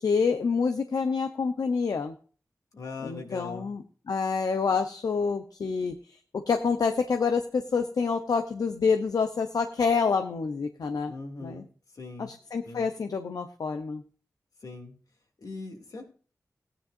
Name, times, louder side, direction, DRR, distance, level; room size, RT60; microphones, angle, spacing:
voice 1, 0.0-2.1 3.0-11.1 11.4-11.6 12.2-14.0, left 5 dB, 85° left, 7 dB, 0.8 m, -27 dB
voice 2, 2.7-3.7 11.1-11.6 11.9-12.3 12.6-12.9 14.6-14.9 15.4-16.0, left 3 dB, 70° left, 2 dB, 2.5 m, -40 dB
16.5 x 10.0 x 2.6 m, 0.40 s
wide cardioid pair, 90°, 6 cm